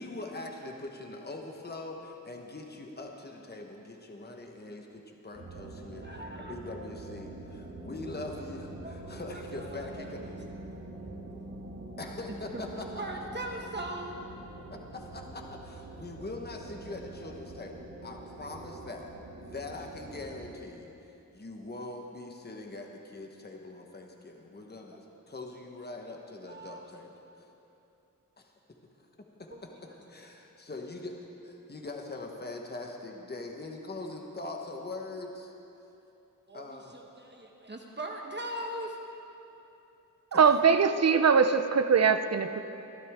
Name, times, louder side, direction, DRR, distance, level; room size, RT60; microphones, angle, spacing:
voice 1, 0.0-10.4 12.0-12.9 14.7-19.1 19.4-20.9 21.3-27.1 28.4-28.5 29.2-31.1 31.4-35.5 36.5-37.0 40.3-40.4, left 2 dB, 30° left, 2 dB, 1.3 m, -42 dB
sound 1, 5.3-20.5, right 2 dB, 65° right, 2.1 m, -45 dB
voice 2, 6.0-6.6 8.8-9.0 9.3-9.9 10.2-10.4 12.5-14.3 26.5-26.9 29.5-29.6 36.5-39.1, right 1 dB, 30° right, 1 dB, 1.2 m, -40 dB
voice 3, 40.3-42.6, right 6 dB, 50° right, 10 dB, 0.7 m, -22 dB
22.5 x 12.0 x 3.7 m, 2.9 s
wide cardioid pair, 95°, 34 cm